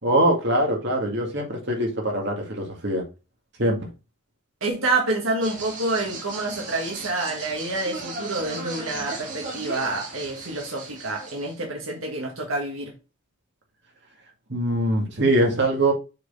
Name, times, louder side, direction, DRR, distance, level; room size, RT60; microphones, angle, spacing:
voice 1, 0.0-3.0 3.6-3.8 14.5-15.9, right 1 dB, 55° right, 2.0 m, -22 dB
voice 2, 4.6-12.9, right 2 dB, 80° right, 1.8 m, -28 dB
sound 1, 5.4-11.6, right 3 dB, 40° right, 2.8 m, -37 dB
6.6 x 4.3 x 4.1 m
head